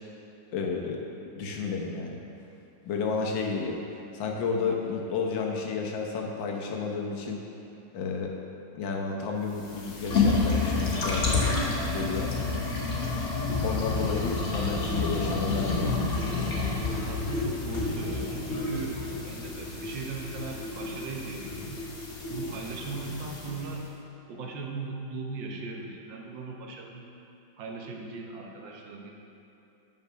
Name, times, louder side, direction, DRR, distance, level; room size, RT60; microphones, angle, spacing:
voice 1, 0.5-1.0 1.4-2.2 2.8-3.8 4.1-7.5 7.9-8.3 8.7-11.5 11.9-12.3 13.6-16.0, left 4 dB, 85° left, 1 dB, 1.7 m, -31 dB
sound 1, 9.5-23.8, left 3 dB, 45° left, 1.3 m, -29 dB
voice 2, 17.0-21.9 22.3-23.8 24.3-27.1 27.6-29.1, right 3 dB, 85° right, 1 dB, 1.7 m, -38 dB
7.2 x 5.9 x 5.6 m, 2.9 s
omnidirectional pair, 2.0 m